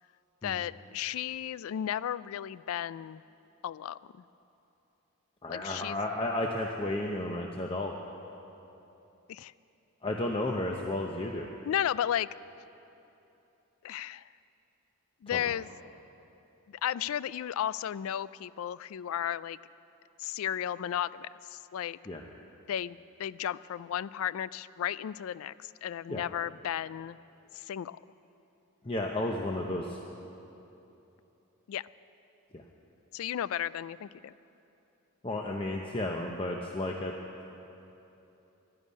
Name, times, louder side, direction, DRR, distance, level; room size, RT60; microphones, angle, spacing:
voice 1, 0.4-3.2 3.6-4.0 5.5-6.0 9.3-9.5 11.7-12.3 13.8-14.3 15.2-15.7 16.7-19.6 20.2-22.0 22.7-27.2 27.5-28.0 31.7-31.9 33.1-34.3, left 10 dB, 70° left, 19 dB, 0.3 m, -34 dB
voice 2, 5.4-7.9 10.0-11.5 15.3-15.4 22.1-22.2 26.1-26.2 28.8-30.0 32.5-32.6 35.2-37.1, left 1 dB, 25° left, 1 dB, 0.7 m, -32 dB
11.5 x 11.0 x 9.5 m, 3.0 s
head